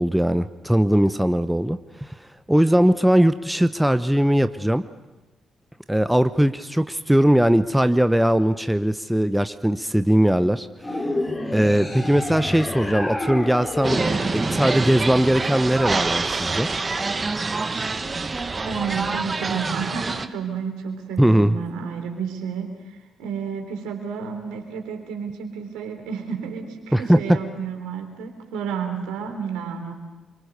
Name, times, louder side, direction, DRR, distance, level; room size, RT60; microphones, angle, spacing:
voice 1, 0.0-4.8 5.9-11.1 11.5-14.0 14.3-16.7 21.2-21.6 26.9-27.4, equal, 5° right, 11 dB, 0.9 m, -20 dB
sound 1, 10.8-15.3, left 2 dB, 25° left, 4.6 m, -30 dB
sound 2, 13.8-20.3, right 3 dB, 30° right, 1.4 m, -26 dB
voice 2, 18.7-29.9, right 6 dB, 70° right, 4 dB, 3.5 m, -31 dB
27.0 x 24.0 x 6.8 m, 1.1 s
hypercardioid pair, 45°, 0 cm